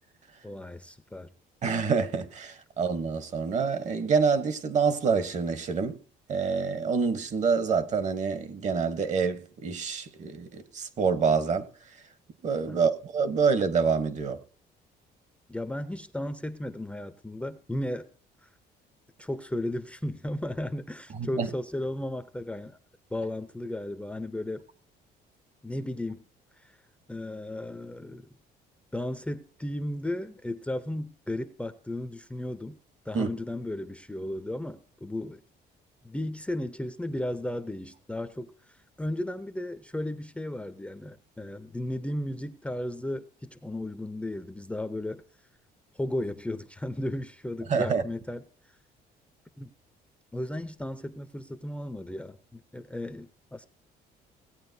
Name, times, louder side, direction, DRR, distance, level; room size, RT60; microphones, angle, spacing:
voice 1, 0.4-1.3 12.7-12.9 15.5-18.1 18.4-18.5 19.2-22.8 23.1-24.6 25.6-26.2 26.6-26.8 27.1-28.3 28.9-32.8 33.1-35.4 36.0-38.5 39.0-45.2 45.9-48.4 49.6-49.7 50.3-53.7, left 1 dB, 5° left, 0.6 m, -35 dB
voice 2, 1.6-6.0 6.3-11.6 12.4-14.4 21.1-21.5 33.1-33.3 47.7-48.0, right 5 dB, 45° right, 1.1 m, -27 dB
17.5 x 8.6 x 2.7 m
cardioid pair, 110°, 17 cm